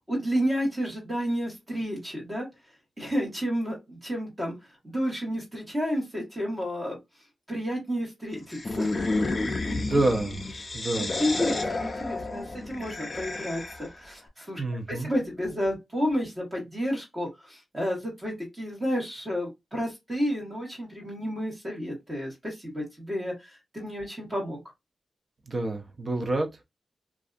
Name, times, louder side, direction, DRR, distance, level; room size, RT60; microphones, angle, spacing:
voice 1, 0.1-2.5 3.0-4.5 4.8-7.0 7.5-8.9 9.6-10.0 10.9-14.6 14.9-24.6, equal, 20° right, 1.3 m, -31 dB
sound 1, 8.5-14.0, left 2 dB, 30° left, 0.4 m, -31 dB
voice 2, 9.8-10.4 10.7-11.1 14.6-15.1 25.5-26.6, right 2 dB, 35° right, 0.5 m, -28 dB
2.6 x 2.3 x 2.4 m
wide cardioid pair, 145°, 0 cm